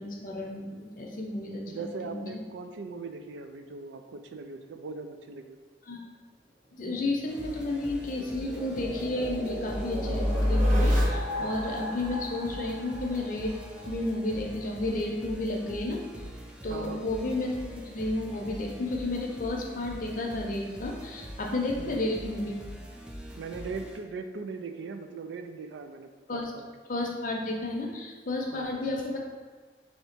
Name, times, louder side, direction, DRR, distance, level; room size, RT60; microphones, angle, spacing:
voice 1, 0.0-2.4 5.9-6.0 6.7-13.6 13.9-16.0 16.6-22.6 26.3-26.5 26.9-29.2, left 2 dB, 45° left, 0 dB, 0.6 m, -32 dB
voice 2, 1.7-5.6 16.7-17.1 21.8-22.0 23.4-26.7 28.5-28.8, right 4 dB, 85° right, 7 dB, 0.4 m, -40 dB
sound 1, 7.1-13.9, equal, 40° right, 1.1 m, -30 dB
sound 2, 7.3-24.0, equal, 5° right, 0.4 m, -43 dB
3.3 x 2.9 x 4.4 m, 1.5 s
head